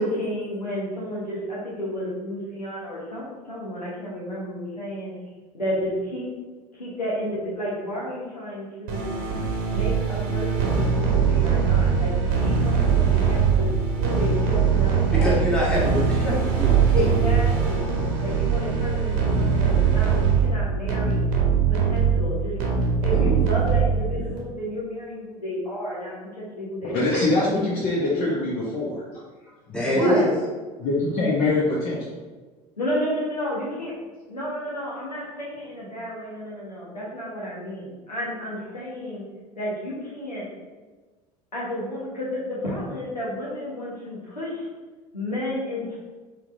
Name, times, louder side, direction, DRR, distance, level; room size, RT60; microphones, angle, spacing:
voice 1, 0.0-5.1 5.5-6.3 6.7-9.2 9.7-13.7 14.0-15.3 16.9-21.2 21.7-22.6 23.0-27.1 29.9-30.3 32.8-33.9 34.3-39.2 39.5-40.5 41.5-44.7 45.1-46.0, equal, 85° left, -6 dB, 1.2 m, -31 dB
sound 1, 8.9-24.3, right 6 dB, 50° right, 0.9 m, -22 dB
voice 2, 15.1-17.1 23.1-23.3 24.1-24.3 29.7-30.3, equal, 5° left, -6 dB, 1.4 m, -24 dB
voice 3, 26.8-28.9 30.8-32.2, left 2 dB, 45° left, -6 dB, 1.0 m, -23 dB
4.4 x 3.8 x 2.6 m, 1.3 s
figure-of-eight pair, 70°, 20 cm